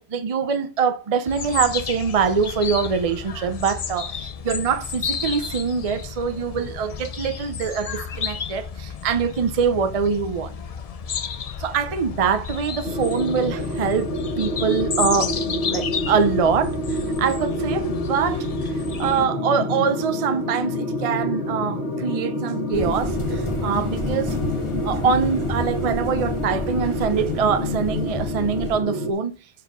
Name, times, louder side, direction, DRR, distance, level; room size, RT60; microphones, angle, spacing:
voice 1, 0.0-10.6 11.6-15.3 15.7-18.5 19.0-24.4 24.8-29.3, right 6 dB, 40° right, 0.6 m, -24 dB
sound 1, 1.3-19.3, left 6 dB, 45° left, 0.5 m, -32 dB
sound 2, 12.8-29.1, left 1 dB, 80° left, 2.0 m, -27 dB
sound 3, 22.7-28.8, left 1 dB, 25° left, 1.6 m, -32 dB
7.1 x 4.7 x 6.0 m
omnidirectional pair, 1.1 m